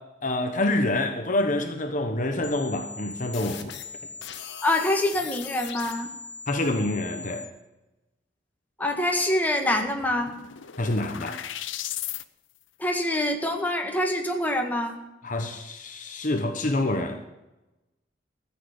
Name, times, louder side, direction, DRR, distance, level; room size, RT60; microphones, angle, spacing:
voice 1, 0.0-3.6 6.5-7.5 10.8-11.4 15.2-17.2, left 2 dB, 45° left, 1.1 m, -27 dB
sound 1, 2.4-7.4, left 6 dB, 65° left, 1.5 m, -39 dB
voice 2, 4.6-6.1 8.8-10.3 12.8-15.0, left 1 dB, 10° left, 1.8 m, -25 dB
sound 2, 9.4-9.5 9.7-12.2, left 12 dB, 80° left, 0.7 m, -36 dB
14.5 x 7.6 x 9.4 m
head